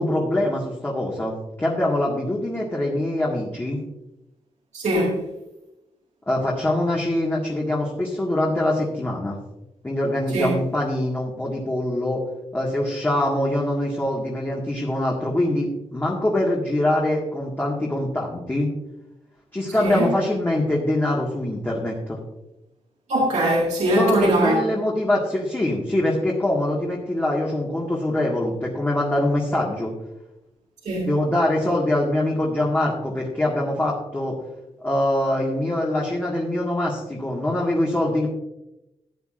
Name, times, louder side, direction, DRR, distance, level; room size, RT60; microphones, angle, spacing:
voice 1, 0.0-3.8 6.3-9.4 9.8-12.2 12.5-18.7 19.5-22.2 24.0-29.9 31.0-34.4 34.8-38.3, left 1 dB, 15° left, -4 dB, 1.8 m, -23 dB
voice 2, 4.7-5.2 10.3-10.5 19.8-20.1 23.1-24.6 30.8-31.1, right 1 dB, 80° right, -3 dB, 2.0 m, -21 dB
15.0 x 9.6 x 2.5 m, 0.92 s
wide cardioid pair, 130°, 12 cm